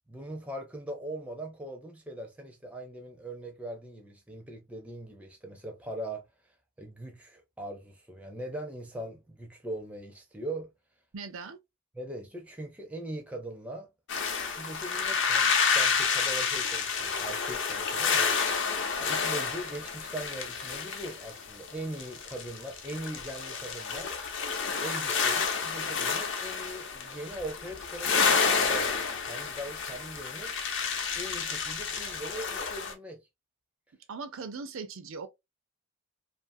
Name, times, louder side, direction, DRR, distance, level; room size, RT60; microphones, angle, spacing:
voice 1, 0.1-6.2 6.8-10.7 11.9-13.9 14.5-18.3 18.6-24.1 24.7-30.5 31.1-33.3, right 1 dB, 5° right, 0.4 m, -41 dB
voice 2, 11.1-11.6 34.1-35.3, right 4 dB, 70° right, 0.5 m, -39 dB
sound 1, 14.1-32.9, left 5 dB, 55° left, 0.6 m, -30 dB
2.6 x 2.5 x 2.5 m
head